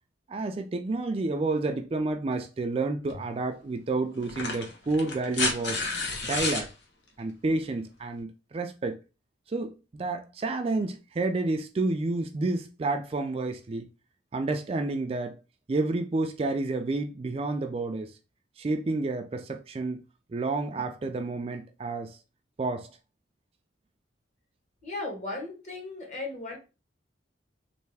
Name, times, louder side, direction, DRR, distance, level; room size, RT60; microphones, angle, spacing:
voice 1, 0.3-5.8 6.2-6.7 7.2-9.0 9.5-13.9 14.3-15.4 15.7-18.1 18.6-20.0 20.3-22.2 22.6-22.9, right 3 dB, 35° right, 0.3 m, -30 dB
sound 1, 3.1-3.2 4.2-6.7 8.2-8.3, left 3 dB, 85° left, 0.9 m, -30 dB
voice 2, 24.8-26.6, left 2 dB, 40° left, 1.3 m, -36 dB
3.3 x 2.6 x 3.3 m
head